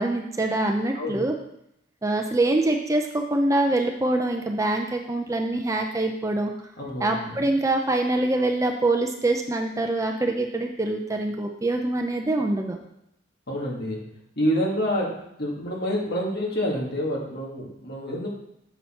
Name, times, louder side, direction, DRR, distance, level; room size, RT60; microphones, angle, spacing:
voice 1, 0.0-1.3 2.0-6.5 7.0-12.8, right 2 dB, 15° right, 3 dB, 0.5 m, -24 dB
voice 2, 6.8-7.4 13.5-14.0 14.4-15.1 15.4-18.3, equal, 55° left, -2 dB, 1.8 m, -27 dB
7.0 x 6.0 x 4.3 m, 0.78 s
head